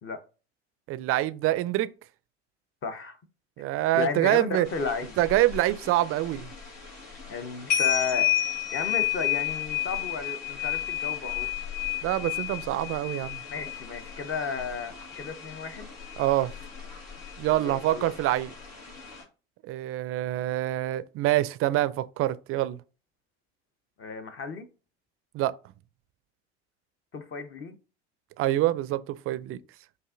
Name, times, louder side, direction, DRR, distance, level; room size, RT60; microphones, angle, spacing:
voice 1, 0.9-1.9 3.6-4.7 5.2-6.5 12.0-13.4 16.2-16.5 17.4-18.5 19.6-22.8 25.3-25.5 28.4-29.6, right 15 dB, 40° right, 0.4 m, -26 dB
voice 2, 2.8-3.2 3.9-5.2 7.3-8.3 8.7-11.5 13.5-15.9 17.5-18.1 24.0-24.7 27.1-27.8, left 4 dB, 35° left, 0.9 m, -33 dB
sound 1, 4.7-19.2, left 12 dB, 70° left, 1.7 m, -32 dB
7.8 x 2.6 x 2.5 m
hypercardioid pair, 70°, 36 cm